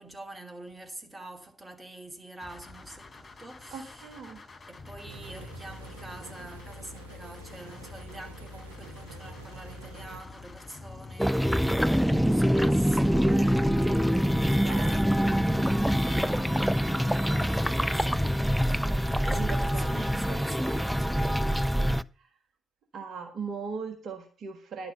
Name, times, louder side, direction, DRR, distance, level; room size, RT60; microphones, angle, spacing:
voice 1, 0.0-4.1 4.7-14.2 14.5-15.2 15.7-18.3 18.6-21.5, right 1 dB, 20° right, 2.5 m, -46 dB
sound 1, 2.4-20.4, left 3 dB, 35° left, 3.8 m, -45 dB
voice 2, 3.7-4.4 14.5-15.3 19.3-19.9 20.3-20.4 22.9-24.9, right 5 dB, 55° right, 1.5 m, -38 dB
sound 2, 5.1-10.2, right 7 dB, 85° right, 0.7 m, -49 dB
sound 3, 11.2-22.0, equal, ahead, 0.4 m, -25 dB
11.0 x 6.0 x 6.8 m
figure-of-eight pair, 40°, 0 cm